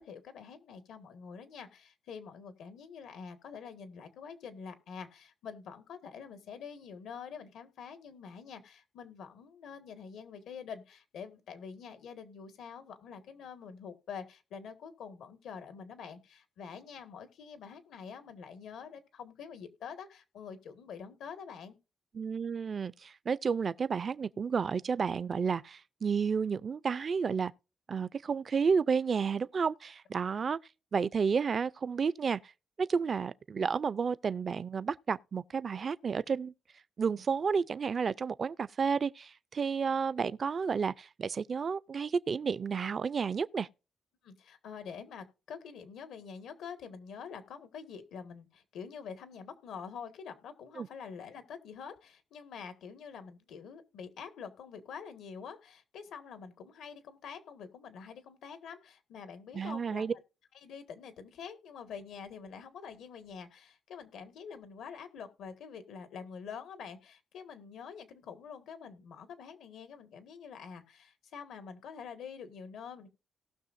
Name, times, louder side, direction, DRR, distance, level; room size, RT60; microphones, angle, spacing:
voice 1, 0.0-21.8 30.3-30.4 44.2-60.1 60.6-73.1, left 6 dB, 90° left, 1.6 m, -46 dB
voice 2, 22.1-27.5 27.9-30.6 30.9-32.5 32.8-36.5 37.0-43.7 50.8-50.9 59.5-60.1, right 6 dB, 45° right, 0.4 m, -31 dB
18.5 x 6.3 x 2.5 m
cardioid pair, 110°, 0 cm